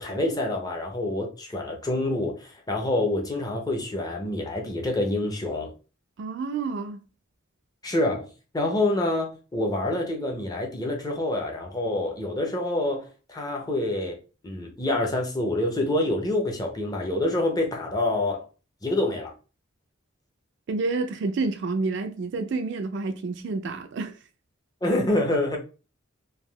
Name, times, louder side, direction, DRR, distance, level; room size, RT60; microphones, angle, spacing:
voice 1, 0.0-5.7 7.8-8.3 8.5-14.2 14.4-18.4 18.8-19.3 24.8-25.6, left 1 dB, 20° left, 0.5 m, -27 dB
voice 2, 6.2-7.0 20.7-24.1, right 3 dB, 55° right, 0.3 m, -29 dB
3.3 x 2.2 x 2.2 m
head